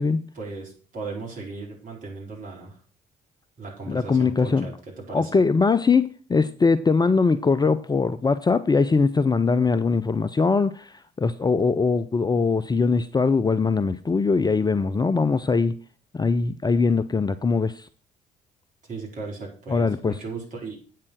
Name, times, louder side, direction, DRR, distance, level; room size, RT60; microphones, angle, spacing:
voice 1, 0.3-2.8 3.6-5.3 18.9-20.8, right 3 dB, 40° right, -2 dB, 4.6 m, -36 dB
voice 2, 3.9-4.7 5.1-15.7 16.1-17.9 19.7-20.2, left 4 dB, 20° left, 13 dB, 0.6 m, -21 dB
8.5 x 7.5 x 6.3 m, 0.40 s
figure-of-eight pair, 45°, 20 cm